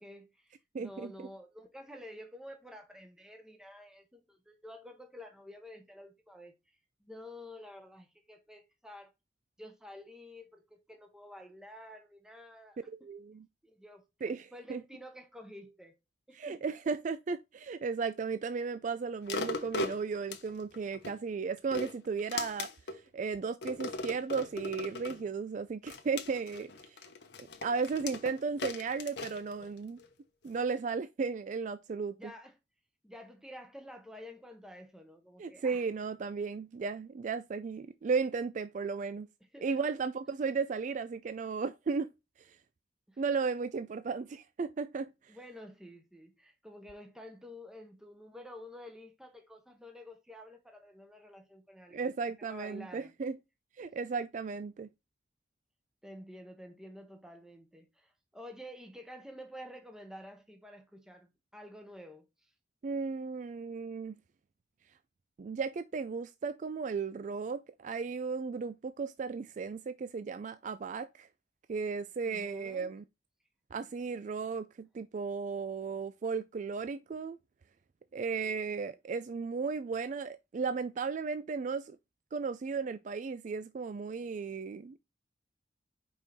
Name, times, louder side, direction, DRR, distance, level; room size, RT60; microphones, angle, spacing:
voice 1, 0.0-9.1 9.6-12.8 13.6-14.0 14.5-16.0 16.3-16.6 32.2-32.6 33.0-35.9 39.5-39.9 43.1-43.2 45.3-53.1 56.0-62.5 72.2-72.9, left 1 dB, 5° right, 1.0 m, -50 dB
voice 2, 0.7-1.1 13.0-13.5 14.2-14.8 16.3-27.0 27.4-30.0 30.4-32.3 35.4-39.3 39.6-42.1 42.4-42.6 43.2-45.3 51.9-53.4 53.8-54.9 62.8-64.2 65.4-71.3 71.7-73.0 73.7-77.4 78.1-82.0 82.3-85.0, right 5 dB, 45° right, 0.3 m, -35 dB
sound 1, 19.3-21.2 21.6-23.0 23.6-25.2 25.9-30.1 30.6-30.7, left 3 dB, 75° left, 1.0 m, -39 dB
5.5 x 4.6 x 4.1 m
head